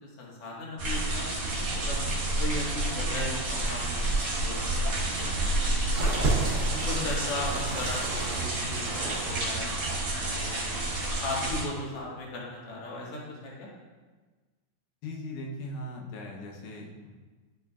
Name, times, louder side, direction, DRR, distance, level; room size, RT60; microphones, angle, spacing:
voice 1, 0.0-2.0 2.4-5.5 5.8-6.3 6.7-10.8 11.2-13.7, left 2 dB, 55° left, -4 dB, 2.3 m, -37 dB
sound 1, 0.8-11.6, right 2 dB, 45° right, 1.2 m, -29 dB
sound 2, 5.9-9.4 9.6-10.5 11.3-11.4, right 4 dB, 80° right, 1.1 m, -35 dB
voice 2, 15.0-17.2, left 1 dB, 85° left, 0 dB, 2.5 m, -39 dB
12.0 x 6.3 x 2.4 m, 1.3 s
omnidirectional pair, 3.5 m